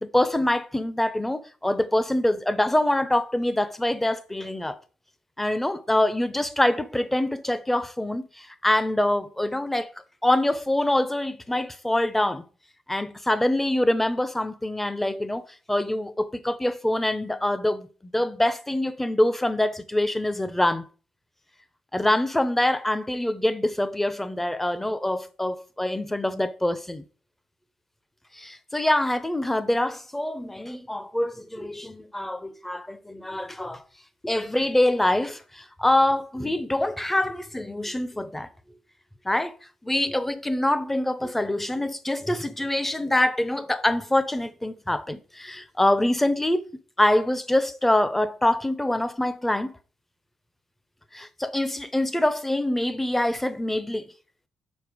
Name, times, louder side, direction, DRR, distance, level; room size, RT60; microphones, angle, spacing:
voice 1, 0.0-4.8 5.4-9.9 10.2-12.5 12.9-17.9 18.1-20.9 21.9-27.0 28.3-33.8 34.2-38.5 39.2-39.5 39.8-46.7 47.0-49.7 51.1-54.1, left 1 dB, 10° left, 0.8 m, -25 dB
5.3 x 4.4 x 6.2 m
cardioid pair, 80°, 2 cm